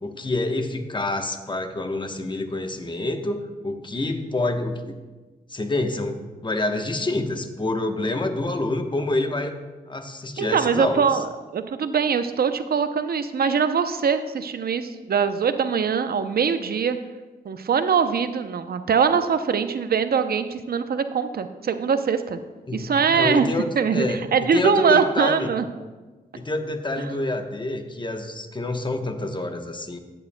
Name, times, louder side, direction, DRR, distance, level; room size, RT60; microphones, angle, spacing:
voice 1, 0.0-5.0 5.5-9.5 9.9-11.2 22.7-24.2 24.5-25.5 26.3-30.0, left 2 dB, 30° left, 6 dB, 1.0 m, -27 dB
voice 2, 10.4-17.0 17.4-22.4 22.7-23.5 23.8-25.6, right 6 dB, 65° right, 10 dB, 0.6 m, -22 dB
14.0 x 8.6 x 2.2 m, 1.3 s
cardioid pair, 55°, 17 cm